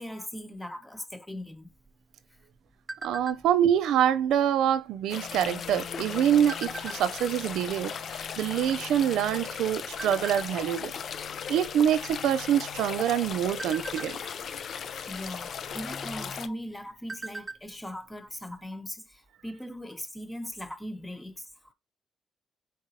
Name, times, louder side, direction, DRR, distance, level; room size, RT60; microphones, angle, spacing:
voice 1, 0.0-1.7 15.1-21.7, equal, 10° left, 0.8 m, -39 dB
sound 1, 1.7-3.7 4.2-4.4 4.7-5.1 5.8-7.3 7.9-8.0 8.2-9.5 10.0-10.5 11.0-11.3 11.6-11.8 12.2-12.8 13.2-14.6 15.7-15.8 16.2-16.3 16.7-17.7 18.0-18.1 18.5-18.6, right 3 dB, 20° right, 0.5 m, -41 dB
voice 2, 3.0-10.9 11.5-14.2, right 10 dB, 85° right, 0.4 m, -25 dB
sound 2, 5.1-16.5, left 7 dB, 60° left, 0.4 m, -37 dB
4.0 x 3.8 x 2.7 m
cardioid pair, 90°, 0 cm